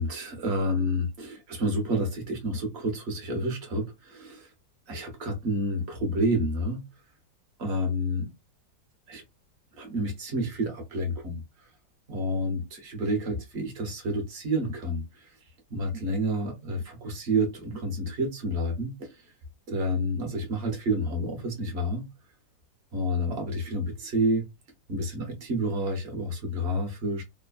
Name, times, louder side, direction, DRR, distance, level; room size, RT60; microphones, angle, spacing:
voice 1, 0.0-4.5 4.9-6.8 7.6-8.3 9.1-9.2 9.7-11.4 12.1-15.0 15.7-19.1 19.7-22.0 22.9-24.5 24.9-27.2, equal, 50° right, 0.9 m, -29 dB
3.1 x 2.1 x 2.3 m
omnidirectional pair, 2.0 m